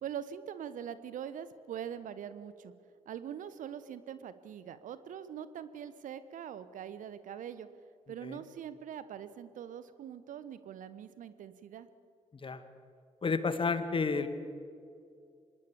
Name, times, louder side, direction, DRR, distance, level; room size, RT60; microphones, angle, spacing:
voice 1, 0.0-2.7 3.0-7.7 8.1-11.9, right 9 dB, 55° right, 14 dB, 1.2 m, -43 dB
voice 2, 13.2-14.3, left 4 dB, 35° left, 10 dB, 2.0 m, -31 dB
26.0 x 20.5 x 7.2 m, 2.4 s
figure-of-eight pair, 40°, 16 cm